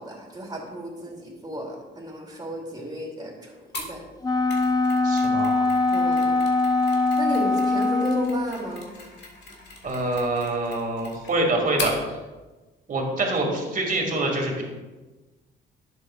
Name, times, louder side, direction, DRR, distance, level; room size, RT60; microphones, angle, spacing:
voice 1, 0.0-3.5 3.8-4.0 5.9-6.4 7.2-8.9, right 1 dB, 20° right, -2 dB, 2.7 m, -34 dB
Mechanisms, 3.7-12.0, left 3 dB, 60° left, 2.0 m, -40 dB
Wind instrument woodwind instrument, 4.2-8.5, left 3 dB, 20° left, 0.7 m, -22 dB
voice 2, 5.0-5.6 9.8-12.2 12.9-14.6, right 2 dB, 45° right, 0 dB, 2.4 m, -25 dB
11.0 x 7.6 x 2.5 m, 1.2 s
cardioid pair, 90°, 20 cm